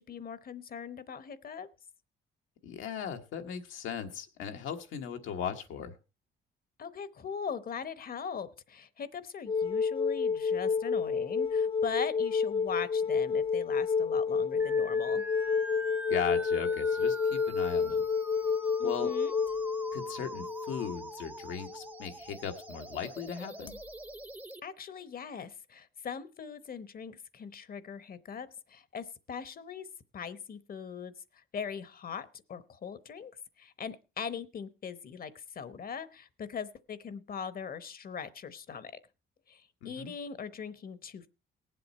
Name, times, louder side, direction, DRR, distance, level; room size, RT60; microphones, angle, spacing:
voice 1, 0.0-1.7 6.8-15.2 18.8-19.4 24.6-29.9 30.1-33.3 33.6-38.9 39.5-41.3, left 6 dB, 45° left, 16 dB, 0.9 m, -40 dB
voice 2, 2.6-5.9 16.1-18.1 18.8-19.1 19.9-23.8 39.8-40.1, left 7 dB, 90° left, 4 dB, 1.4 m, -38 dB
sound 1, 9.5-21.9 23.7-23.8, left 5 dB, 25° left, 0.5 m, -30 dB
sound 2, 14.6-24.6, right 1 dB, 10° right, 0.7 m, -44 dB
18.0 x 7.8 x 4.2 m, 0.30 s
cardioid pair, 90°, 20 cm